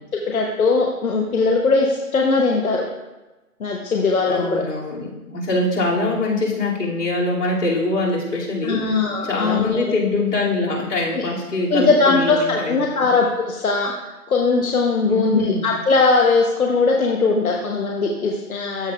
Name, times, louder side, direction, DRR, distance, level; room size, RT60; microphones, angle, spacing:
voice 1, 0.1-2.9 3.6-4.6 8.6-10.0 11.1-11.2 11.7-18.9, left 4 dB, 65° left, 0 dB, 1.1 m, -20 dB
voice 2, 4.3-9.0 9.2-13.1 15.1-15.7, left 2 dB, 85° left, -4 dB, 2.9 m, -23 dB
14.0 x 5.4 x 2.5 m, 1.1 s
hypercardioid pair, 170°, 46 cm